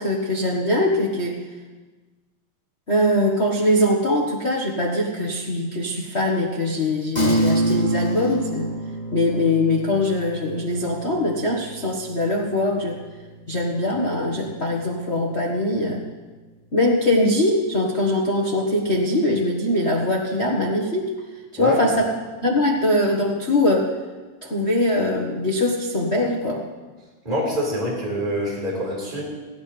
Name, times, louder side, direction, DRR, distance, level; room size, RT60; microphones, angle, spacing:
voice 1, 0.0-1.4 2.9-8.7 9.1-13.0 13.5-16.0 16.7-21.1 21.5-22.1 22.4-23.9 24.4-26.6, left 1 dB, 65° left, -2 dB, 0.6 m, -22 dB
sound 1, 7.1-16.9, right 1 dB, 10° left, 2.9 m, -29 dB
voice 2, 27.2-29.2, equal, 15° right, -5 dB, 4.6 m, -25 dB
18.0 x 17.0 x 3.4 m, 1.3 s
omnidirectional pair, 3.9 m